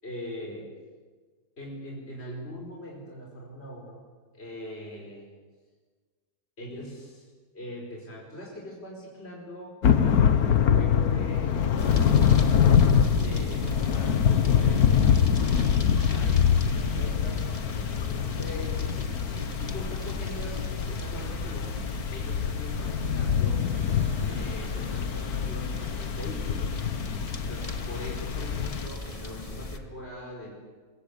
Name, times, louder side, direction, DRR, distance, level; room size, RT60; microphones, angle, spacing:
voice 1, 0.0-0.7 1.6-4.0 4.3-5.3 6.6-7.3 7.5-12.5 13.2-21.7 22.1-23.7 24.3-26.8 27.3-30.5, left 1 dB, 40° left, -2 dB, 5.2 m, -42 dB
Thunder / Rain, 9.8-28.9, left 8 dB, 70° left, 1.6 m, -25 dB
sound 1, 11.8-29.8, left 2 dB, 25° left, 1.6 m, -36 dB
sound 2, 23.6-27.5, left 1 dB, 5° left, 2.6 m, -47 dB
23.5 x 23.0 x 8.4 m, 1.4 s
omnidirectional pair, 1.7 m